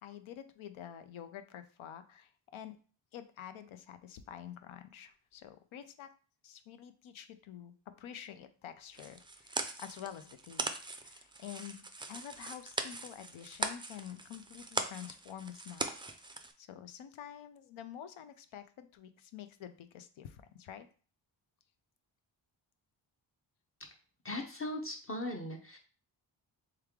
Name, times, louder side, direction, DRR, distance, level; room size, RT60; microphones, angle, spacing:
voice 1, 0.0-2.8 3.1-6.1 6.4-15.9 16.6-20.9, left 10 dB, 75° left, 10 dB, 0.6 m, -48 dB
sound 1, 8.9-16.5, right 2 dB, 10° right, 0.4 m, -40 dB
voice 2, 24.2-25.8, left 1 dB, 30° left, 2 dB, 0.7 m, -39 dB
3.4 x 3.2 x 3.6 m, 0.39 s
cardioid pair, 80°, 48 cm